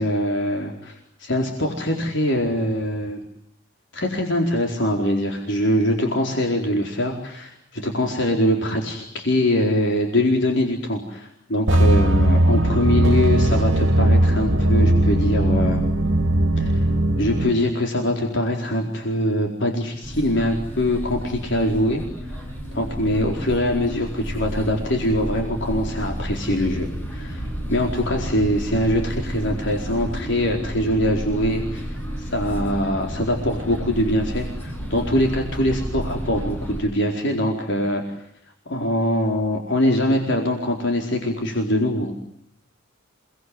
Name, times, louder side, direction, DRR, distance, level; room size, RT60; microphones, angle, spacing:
voice 1, 0.0-3.2 3.9-15.8 16.6-16.7 17.2-22.4 22.7-38.0 38.7-42.1, left 1 dB, 65° left, 2 dB, 4.4 m, -23 dB
sound 1, 11.7-17.5, right 1 dB, 70° right, 2.1 m, -18 dB
sound 2, 20.0-36.8, equal, 10° left, 7.6 m, -31 dB
29.5 x 20.5 x 9.7 m, 0.73 s
head